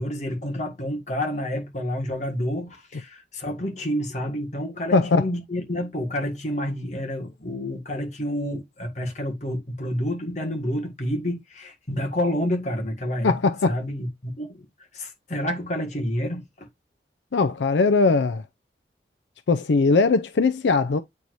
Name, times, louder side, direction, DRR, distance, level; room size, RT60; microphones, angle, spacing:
voice 1, 0.0-13.3 13.7-14.7 14.9-16.7, equal, 40° left, 1.8 m, -29 dB
voice 2, 4.9-5.2 13.2-13.8 17.3-18.4 19.5-21.0, left 4 dB, 85° left, 0.5 m, -20 dB
8.5 x 4.7 x 2.6 m
head